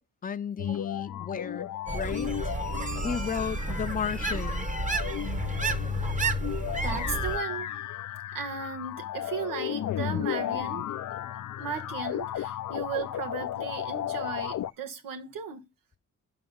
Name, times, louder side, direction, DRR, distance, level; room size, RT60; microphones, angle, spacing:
voice 1, 0.2-2.5 3.0-4.7, left 7 dB, 25° left, 0.6 m, -34 dB
sound 1, 0.6-14.7, left 11 dB, 65° left, 0.6 m, -34 dB
sound 2, 1.9-7.4, right 3 dB, 25° right, 1.0 m, -31 dB
voice 2, 6.6-7.7 8.3-10.9 11.6-15.7, right 6 dB, 90° right, 1.5 m, -36 dB
5.8 x 5.7 x 5.4 m
cardioid pair, 75°, 32 cm